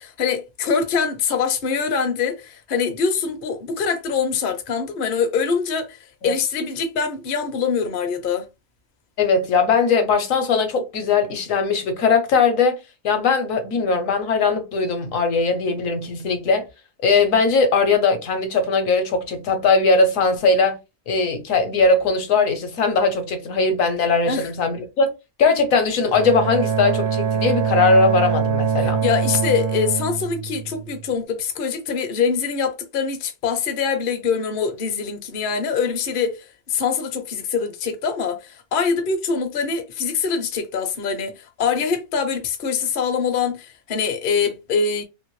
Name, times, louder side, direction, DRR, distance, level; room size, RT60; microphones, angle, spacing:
voice 1, 0.0-6.0 6.2-8.4 24.3-24.5 29.0-45.0, left 6 dB, 50° left, 0.7 m, -24 dB
voice 2, 9.2-12.8 13.0-16.7 17.0-20.8 21.1-25.1 25.4-29.0, left 4 dB, 65° left, 1.1 m, -19 dB
Bowed string instrument, 26.1-31.1, right 6 dB, 85° right, 1.1 m, -23 dB
2.9 x 2.8 x 3.0 m
omnidirectional pair, 1.5 m